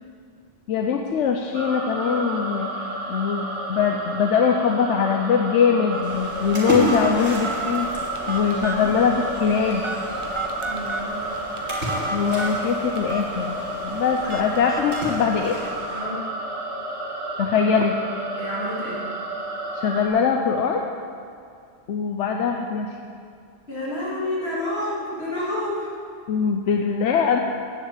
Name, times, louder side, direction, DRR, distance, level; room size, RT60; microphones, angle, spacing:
voice 1, 0.7-9.8 12.1-13.5 13.8-15.6 17.4-18.0 19.7-20.9 21.9-23.0 26.3-27.4, left 6 dB, 90° left, 3 dB, 1.0 m, -22 dB
sound 1, 1.5-20.1, right 2 dB, 90° right, 1.7 m, -31 dB
Telephone, 5.9-15.7, right 2 dB, 30° right, 0.8 m, -34 dB
Splash splatter, 6.0-16.0, equal, 60° right, 3.7 m, -33 dB
voice 2, 10.6-11.3 14.2-14.3 15.9-16.2 18.3-19.0 23.7-25.9, left 1 dB, 65° left, -7 dB, 3.4 m, -29 dB
9.8 x 7.4 x 8.3 m, 2.4 s
omnidirectional pair, 1.2 m